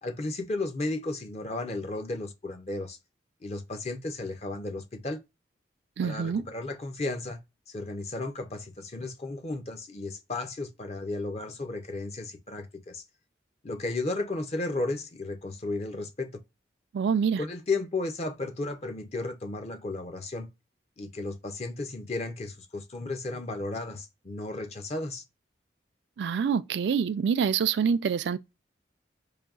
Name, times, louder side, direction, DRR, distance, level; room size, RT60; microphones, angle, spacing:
voice 1, 0.0-3.0 3.4-5.2 6.0-7.4 7.7-13.0 13.6-16.4 17.4-20.5 21.0-25.2, left 2 dB, 35° left, 0.5 m, -34 dB
voice 2, 6.0-6.4 16.9-17.4 26.2-28.4, right 6 dB, 75° right, 0.3 m, -26 dB
4.9 x 2.6 x 2.3 m
head